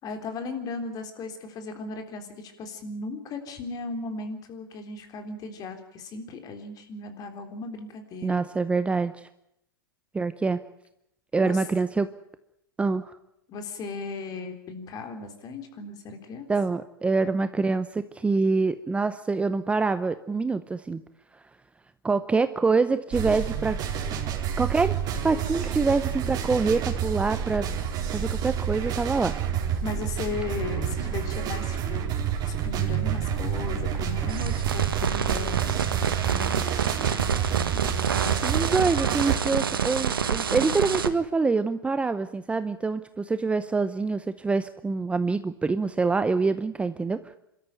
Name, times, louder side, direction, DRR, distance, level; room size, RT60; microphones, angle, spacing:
voice 1, 0.0-8.4 11.3-11.6 13.5-16.5 29.8-32.0 32.4-37.3, left 4 dB, 35° left, 6 dB, 3.7 m, -36 dB
voice 2, 8.2-9.3 10.1-10.6 11.3-12.1 12.8-13.2 16.5-21.0 22.0-23.8 24.6-25.0 25.2-27.7 28.1-29.3 38.4-47.4, right 4 dB, 10° right, 12 dB, 0.7 m, -25 dB
sound 1, 23.1-39.4, right 9 dB, 35° right, 4.1 m, -29 dB
sound 2, 34.3-41.1, right 7 dB, 85° right, 1.7 m, -28 dB
26.0 x 13.5 x 9.1 m, 0.80 s
hypercardioid pair, 110°, 12 cm